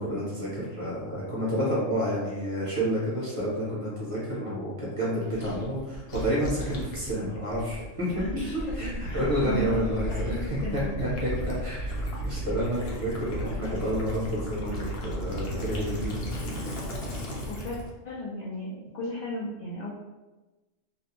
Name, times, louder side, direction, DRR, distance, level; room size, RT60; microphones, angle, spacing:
voice 1, 0.0-8.1 8.3-11.3 11.6-11.9 12.2-16.2, equal, 30° right, -8 dB, 0.7 m, -30 dB
Gurgling / Liquid, 5.3-17.9, equal, 60° left, 0.8 m, -34 dB
voice 2, 8.1-8.8 9.1-10.9 17.1-17.8 18.0-19.9, left 1 dB, 75° left, -6 dB, 0.3 m, -36 dB
2.5 x 2.1 x 2.9 m, 1.1 s
omnidirectional pair, 1.3 m